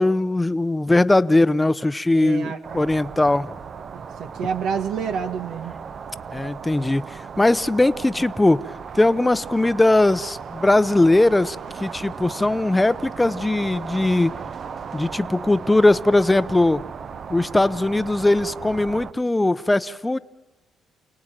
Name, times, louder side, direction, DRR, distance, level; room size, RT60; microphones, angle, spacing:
voice 1, 0.0-3.6 6.3-8.6 8.9-14.4 14.9-16.8 17.3-20.2, left 2 dB, 15° left, 0.8 m, -20 dB
voice 2, 2.1-2.8 3.9-5.7, right 7 dB, 80° right, 1.3 m, -29 dB
sound 1, 2.6-19.1, right 6 dB, 50° right, 0.8 m, -36 dB
29.0 x 18.5 x 9.1 m
cardioid pair, 90°, 0 cm